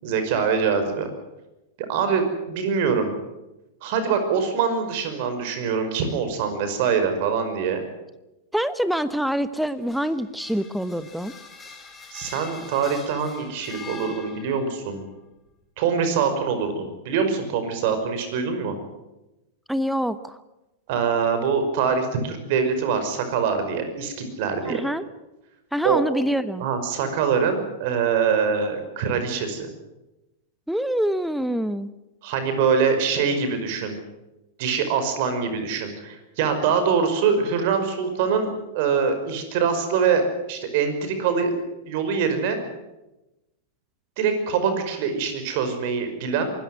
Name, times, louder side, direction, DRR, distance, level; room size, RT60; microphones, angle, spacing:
voice 1, 0.0-1.1 1.9-3.1 3.8-7.8 12.1-15.0 15.8-18.8 20.9-24.8 25.8-26.0 26.6-29.7 32.2-34.0 34.6-41.5 41.8-42.6 44.2-46.5, right 6 dB, 55° right, 8 dB, 5.4 m, -24 dB
voice 2, 8.5-11.3 19.7-20.4 24.7-25.0 25.7-26.6 30.7-31.9, equal, ahead, 13 dB, 1.1 m, -25 dB
sound 1, 9.6-14.8, left 5 dB, 15° left, 5.0 m, -43 dB
24.0 x 14.5 x 9.6 m, 0.98 s
hypercardioid pair, 100°, 0 cm